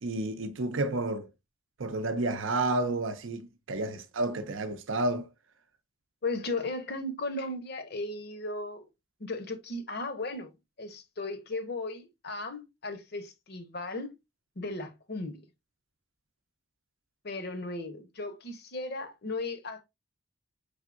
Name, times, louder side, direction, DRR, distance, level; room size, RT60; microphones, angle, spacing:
voice 1, 0.0-1.3 1.8-5.3, right 2 dB, 70° right, 0.6 m, -30 dB
voice 2, 6.2-8.8 9.2-10.5 10.8-14.1 14.6-15.4 17.2-19.8, left 2 dB, 50° left, 0.7 m, -36 dB
4.4 x 3.5 x 2.4 m
head